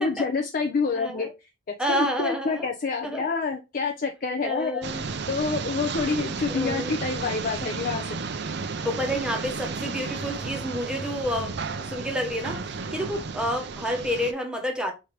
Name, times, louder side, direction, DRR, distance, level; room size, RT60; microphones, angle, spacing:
voice 1, 0.0-1.5 1.9-5.0 5.3-8.1, left 4 dB, 45° left, 0.5 m, -27 dB
voice 2, 0.9-1.3 1.8-2.7 3.0-3.3 4.4-5.0 6.5-6.9 8.8-14.9, equal, 5° right, 0.9 m, -29 dB
sound 1, 4.8-14.3, right 4 dB, 60° right, 0.5 m, -33 dB
4.9 x 3.3 x 2.9 m
head